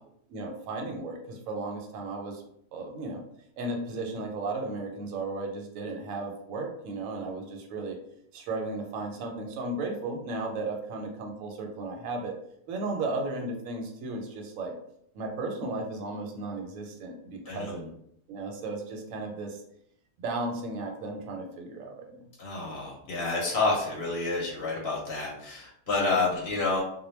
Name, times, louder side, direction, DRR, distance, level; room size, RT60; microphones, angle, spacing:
voice 1, 0.3-2.4 2.7-3.2 3.6-8.0 8.3-12.3 12.7-14.7 15.1-17.9 18.3-19.6 20.2-22.3 25.9-26.0, right 2 dB, 85° right, 1 dB, 1.0 m, -35 dB
voice 2, 17.5-17.9 22.4-26.8, left 3 dB, 60° left, -2 dB, 0.8 m, -29 dB
2.2 x 2.1 x 3.0 m, 0.70 s
omnidirectional pair, 1.3 m